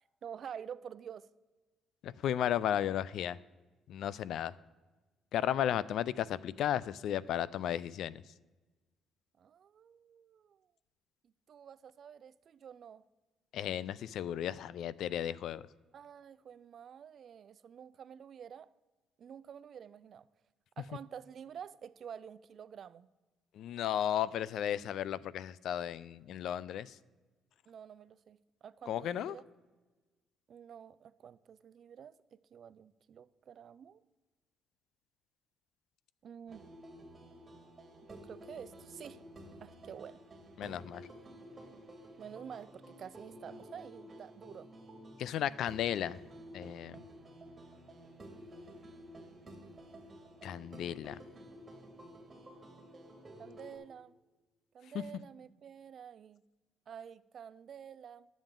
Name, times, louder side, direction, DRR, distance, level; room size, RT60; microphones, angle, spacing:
voice 1, 0.2-1.3 9.4-10.6 11.2-13.0 15.9-18.7 19.2-20.3 20.8-23.1 27.7-29.4 30.5-34.0 36.2-36.6 38.1-39.2 39.6-40.2 42.2-44.7 53.4-54.1 54.7-56.4 56.9-58.3, right 8 dB, 50° right, 16 dB, 0.4 m, -49 dB
voice 2, 2.0-3.4 3.9-4.5 5.3-8.2 13.5-15.6 23.5-27.0 28.9-29.4 40.6-41.1 45.2-46.2 46.5-47.0 50.4-51.2 54.9-55.0, left 10 dB, 70° left, 19 dB, 0.3 m, -34 dB
sound 1, 36.5-53.8, equal, 25° right, 2.0 m, -52 dB
11.5 x 7.2 x 3.8 m, 1.2 s
cardioid pair, 110°, 0 cm